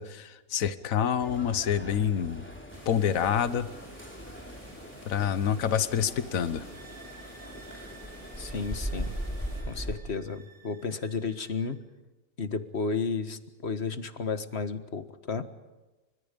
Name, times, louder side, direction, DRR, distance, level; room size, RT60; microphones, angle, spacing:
voice 1, 0.0-2.4 2.9-3.7 5.1-6.7, left 8 dB, 70° left, 13 dB, 1.5 m, -27 dB
sound 1, 1.2-10.0, equal, 10° left, 3.3 m, -40 dB
sound 2, 2.7-9.6, right 1 dB, 25° right, 4.7 m, -52 dB
sound 3, 6.4-11.8, right 4 dB, 60° right, 7.2 m, -55 dB
voice 2, 8.4-9.1 9.7-11.8 12.4-15.5, left 4 dB, 50° left, 10 dB, 1.8 m, -32 dB
30.0 x 26.0 x 5.3 m, 1.1 s
omnidirectional pair, 1.5 m